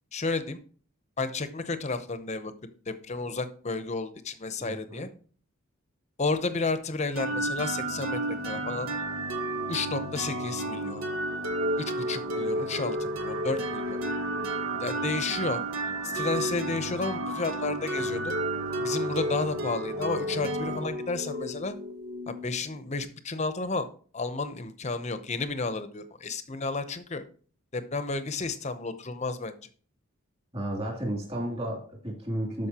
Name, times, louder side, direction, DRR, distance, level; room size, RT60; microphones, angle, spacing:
voice 1, 0.1-0.6 1.2-2.5 2.9-5.1 6.2-8.2 8.4-8.9 9.7-11.0 11.8-14.0 14.8-15.6 16.0-18.3 18.8-21.8 22.3-23.9 24.1-27.2 27.7-29.5, left 3 dB, 35° left, 11 dB, 0.7 m, -32 dB
voice 2, 4.6-5.1 30.5-32.7, right 1 dB, 30° right, 0 dB, 2.9 m, -33 dB
sound 1, 7.2-22.8, right 1 dB, 90° right, 1.1 m, -32 dB
12.5 x 5.2 x 2.9 m, 0.43 s
head